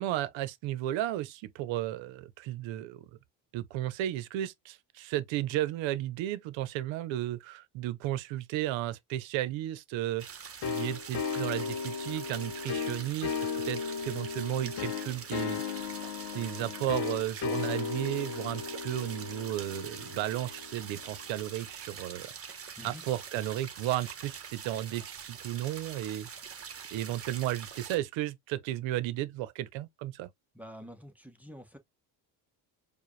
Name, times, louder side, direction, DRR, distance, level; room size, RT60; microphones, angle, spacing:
voice 1, 0.0-3.1 3.5-15.6 16.3-22.3 22.8-26.3 26.9-30.3, right 13 dB, 75° right, 0.8 m, -34 dB
sound 1, 10.2-28.0, right 7 dB, 30° right, 1.1 m, -45 dB
sound 2, 10.6-21.1, left 6 dB, 55° left, 0.9 m, -36 dB
voice 2, 30.5-31.8, equal, 5° right, 1.0 m, -47 dB
4.7 x 2.3 x 3.2 m
cardioid pair, 105°, 46 cm